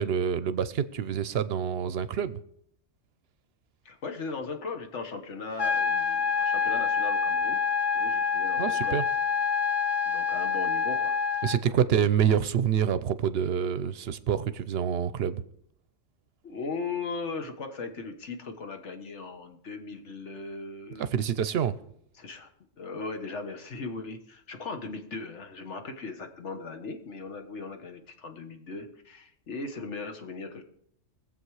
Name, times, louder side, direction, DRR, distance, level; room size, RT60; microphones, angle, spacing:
voice 1, 0.0-2.4 8.6-9.0 11.4-15.4 21.0-21.8, right 8 dB, 60° right, 0.8 m, -27 dB
voice 2, 3.8-7.6 7.9-9.0 10.1-11.2 11.6-11.8 16.4-21.1 22.1-22.5 22.8-30.6, left 4 dB, 65° left, 1.6 m, -38 dB
sound 1, 5.6-11.6, left 6 dB, 40° left, 0.4 m, -27 dB
20.5 x 7.7 x 4.8 m
omnidirectional pair, 1.3 m